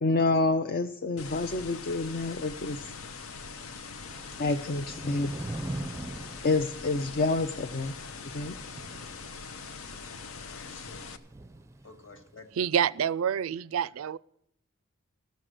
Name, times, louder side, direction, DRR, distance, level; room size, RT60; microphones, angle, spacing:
voice 1, 0.0-2.8 4.4-5.3 6.4-7.9 8.3-8.5, left 3 dB, 45° left, 0.5 m, -28 dB
sound 1, 1.2-11.2, left 5 dB, 85° left, 0.8 m, -42 dB
Thunder / Rain, 4.0-12.4, right 1 dB, 15° right, 0.5 m, -43 dB
voice 2, 10.2-11.2 11.8-12.5, left 3 dB, 65° left, 1.8 m, -52 dB
voice 3, 12.6-14.2, right 8 dB, 75° right, 0.4 m, -27 dB
14.5 x 6.4 x 7.6 m
head